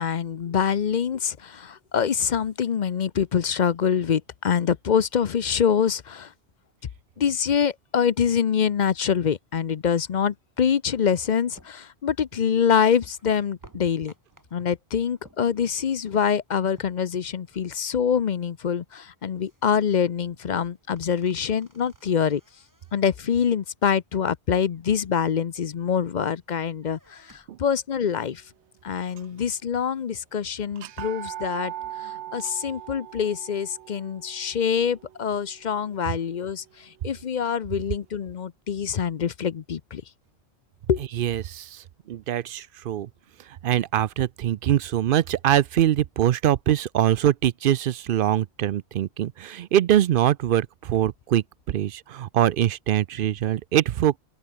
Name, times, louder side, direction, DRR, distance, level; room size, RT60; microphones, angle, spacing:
voice 1, 0.0-6.3 7.2-14.1 14.5-22.4 22.9-28.4 28.8-31.7 32.0-40.0 40.9-41.0, left 7 dB, 50° left, 0.7 m, -25 dB
sound 1, 11.0-17.6 17.9-18.0 18.3-18.7 19.0-19.9 20.3-23.5 24.7-25.5 26.0-26.4 26.7-27.6 28.1-28.2 28.6-29.2, right 1 dB, 15° right, 4.1 m, -58 dB
sound 2, 29.1-29.7 30.0-30.1 30.7-36.6, right 12 dB, 85° right, 0.9 m, -40 dB
voice 2, 41.2-43.1 43.6-54.2, right 11 dB, 60° right, 0.6 m, -23 dB
open air
omnidirectional pair, 1.1 m